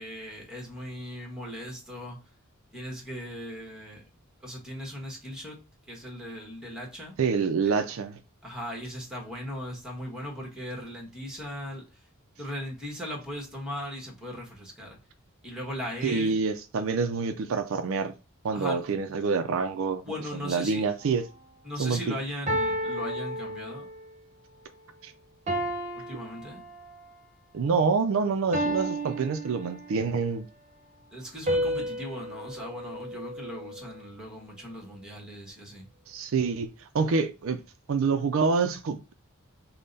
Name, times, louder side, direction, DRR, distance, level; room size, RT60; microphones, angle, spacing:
voice 1, 0.0-2.2 2.7-4.1 4.4-5.6 5.9-7.1 8.4-12.0 12.4-15.0 15.4-16.3 18.5-19.1 20.0-20.8 21.6-23.9 26.0-26.6 31.1-35.9, left 1 dB, 5° right, 1.2 m, -38 dB
voice 2, 7.2-8.2 16.0-18.1 18.4-20.0 20.4-21.2 21.8-22.0 25.0-25.1 27.5-30.5 36.1-37.6 37.9-39.1, right 5 dB, 65° right, 0.4 m, -27 dB
sound 1, 21.0-21.3 22.5-24.1 25.5-27.1 28.5-30.2 31.5-33.9, right 1 dB, 35° right, 0.9 m, -32 dB
5.4 x 2.2 x 3.9 m
head